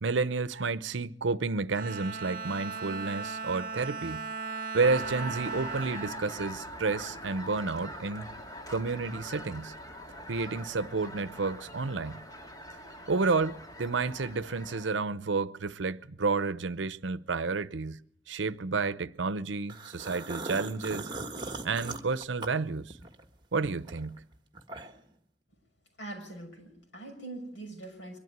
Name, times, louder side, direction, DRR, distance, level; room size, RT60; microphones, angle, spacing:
voice 1, 0.0-4.3 4.7-8.3 8.7-9.7 10.3-12.2 13.1-18.0 18.3-21.1 21.6-23.0 23.5-24.2, right 4 dB, 85° right, 0.7 m, -31 dB
Bowed string instrument, 1.7-7.3, right 5 dB, 50° right, 1.0 m, -38 dB
sound 1, 4.8-14.9, equal, 20° left, 2.1 m, -43 dB
sound 2, 19.7-23.2 23.6-25.1, right 3 dB, 25° right, 1.6 m, -39 dB
voice 2, 26.0-28.2, right 2 dB, 85° left, 6.4 m, -43 dB
23.0 x 12.5 x 9.4 m
head